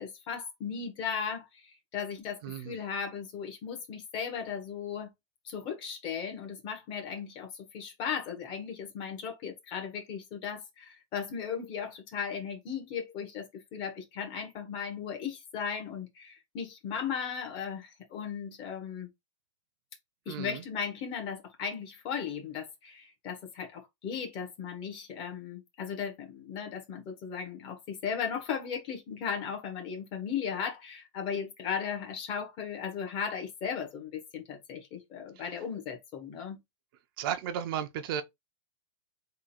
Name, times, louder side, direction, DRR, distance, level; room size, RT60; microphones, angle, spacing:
voice 1, 0.0-5.1 5.4-19.1 20.2-36.6, left 7 dB, 30° left, 1.4 m, -36 dB
voice 2, 2.4-2.8 20.3-20.6 35.4-35.6 37.2-38.2, right 9 dB, 45° right, 0.6 m, -34 dB
3.7 x 2.6 x 4.2 m
supercardioid pair, 155°, 16 cm